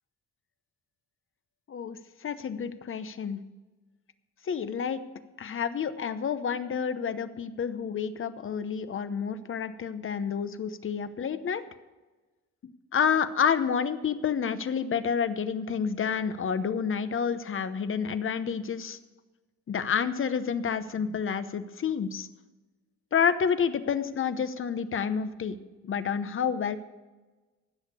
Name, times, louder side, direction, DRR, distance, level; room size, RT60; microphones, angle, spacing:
voice 1, 1.7-3.4 4.4-5.0 5.4-11.6 12.6-19.0 19.7-22.3 23.1-25.6 25.8-26.8, left 7 dB, 45° left, 12 dB, 0.9 m, -29 dB
15.5 x 6.5 x 6.9 m, 1.2 s
cardioid pair, 90°, 30 cm